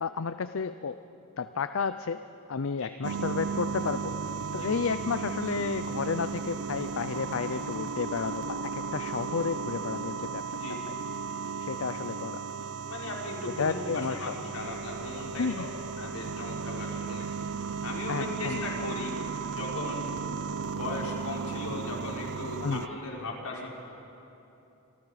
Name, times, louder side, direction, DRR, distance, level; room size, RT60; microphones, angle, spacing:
voice 1, 0.0-1.0 1.4-2.2 2.5-4.1 4.5-10.4 10.7-10.8 11.6-12.4 13.6-14.4 15.4-15.7 18.1-18.9 22.6-22.8, left 5 dB, 65° left, 12 dB, 0.5 m, -32 dB
sound 1, 3.0-22.9, right 5 dB, 75° right, 0.7 m, -35 dB
voice 2, 10.5-10.9 12.9-17.3 17.8-19.2 19.5-20.1 20.7-23.7, left 2 dB, 85° left, -2 dB, 4.6 m, -38 dB
27.0 x 26.5 x 5.0 m, 2.9 s
head